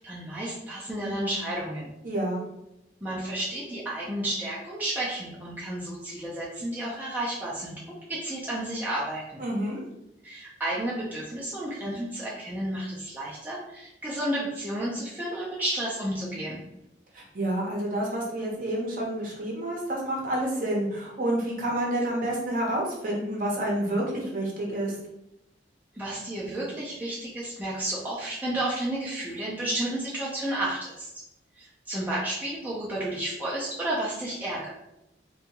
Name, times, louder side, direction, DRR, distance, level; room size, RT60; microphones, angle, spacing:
voice 1, 0.0-1.9 3.0-7.8 8.1-9.4 10.2-16.6 26.0-31.1 31.6-34.7, right 1 dB, 10° right, -7 dB, 0.4 m, -32 dB
voice 2, 2.0-2.4 9.4-9.8 17.1-24.9, right 1 dB, 50° right, -2 dB, 0.7 m, -29 dB
2.7 x 2.3 x 2.8 m, 0.86 s
head